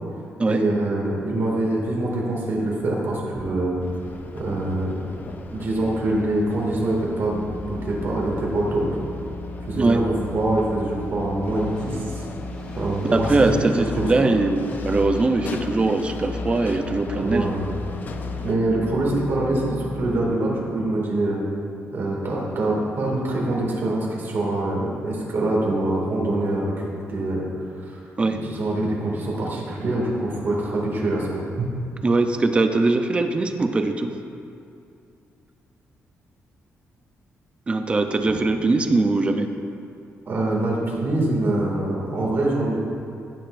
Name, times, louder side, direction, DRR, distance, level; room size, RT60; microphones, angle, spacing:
voice 1, 0.5-3.8 4.3-5.1 5.5-8.9 9.6-12.2 12.8-13.5 14.0-14.3 17.2-17.6 18.4-21.4 21.9-26.7 27.1-27.5 27.9-28.0 28.3-31.7 40.3-42.8, right 2 dB, 50° right, -3 dB, 2.1 m, -24 dB
sound 1, 3.8-18.5, left 4 dB, 40° left, 0.5 m, -37 dB
sound 2, 7.3-20.2, left 2 dB, 15° left, 2.0 m, -36 dB
voice 2, 13.1-17.5 28.2-28.4 32.0-34.1 37.7-39.5, right 3 dB, 20° right, 6 dB, 0.5 m, -21 dB
17.0 x 6.7 x 2.5 m, 2.5 s
wide cardioid pair, 165°, 5 cm